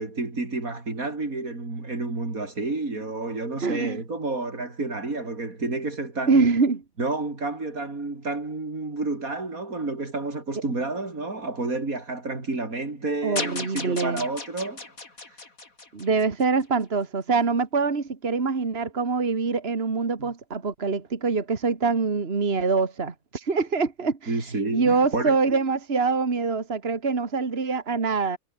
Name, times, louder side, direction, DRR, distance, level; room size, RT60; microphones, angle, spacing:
voice 1, 0.0-6.5 7.0-14.8 20.2-20.3 24.3-25.4, right 3 dB, 85° right, 4.9 m, -30 dB
voice 2, 3.6-4.0 6.3-6.8 13.2-14.2 15.9-24.3 24.7-28.4, right 4 dB, 45° right, 2.2 m, -24 dB
sound 1, 13.4-16.6, left 3 dB, 80° left, 4.2 m, -35 dB
omnidirectional pair, 1.4 m